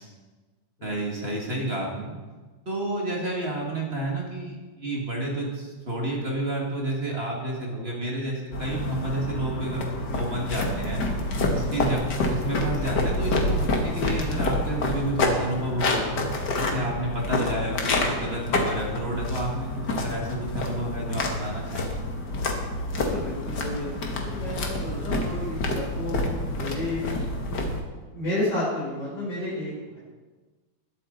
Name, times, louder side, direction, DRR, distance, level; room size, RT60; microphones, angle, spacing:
voice 1, 0.8-2.1 2.6-11.0 11.5-16.1 16.5-22.0, right 1 dB, 25° right, -2 dB, 1.3 m, -30 dB
sound 1, 8.5-27.8, left 2 dB, 80° left, 0.9 m, -28 dB
voice 2, 22.9-27.0 28.1-30.0, left 1 dB, 55° left, -8 dB, 5.7 m, -32 dB
21.0 x 8.4 x 4.0 m, 1.3 s
omnidirectional pair, 4.2 m